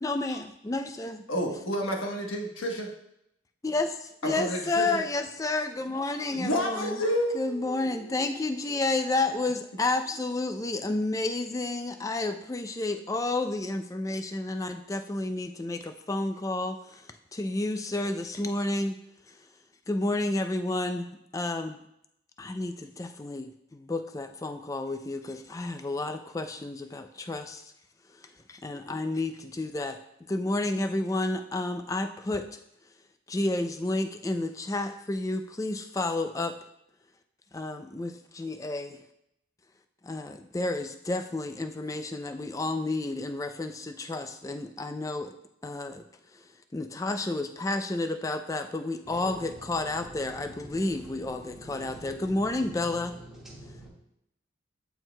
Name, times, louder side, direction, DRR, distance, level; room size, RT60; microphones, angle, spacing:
voice 1, 0.0-1.2 3.6-7.0 7.3-19.0 19.3-19.4 19.9-21.1 21.3-21.8 22.4-27.7 28.1-30.0 30.3-32.6 33.3-36.5 37.5-39.0 40.0-45.3 45.6-46.0 46.3-46.5 46.7-53.1, left 2 dB, 15° left, 8 dB, 0.3 m, -31 dB
voice 2, 1.3-2.9 4.2-5.0 6.3-8.2, equal, 85° left, 1 dB, 1.2 m, -30 dB
voice 3, 49.0-53.9, right 1 dB, ahead, -6 dB, 1.7 m, -47 dB
13.5 x 4.6 x 2.2 m, 0.80 s
head